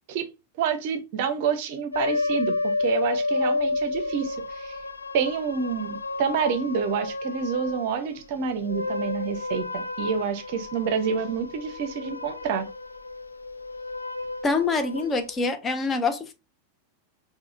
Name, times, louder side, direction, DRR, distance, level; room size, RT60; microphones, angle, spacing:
voice 1, 0.6-4.8 5.1-12.7, right 6 dB, 50° right, 0.5 m, -28 dB
sound 1, 1.9-8.0 8.5-15.4, left 2 dB, 80° left, 0.3 m, -31 dB
voice 2, 14.4-16.3, left 3 dB, 20° left, 0.5 m, -25 dB
4.7 x 2.2 x 2.4 m
figure-of-eight pair, 90°, 0 cm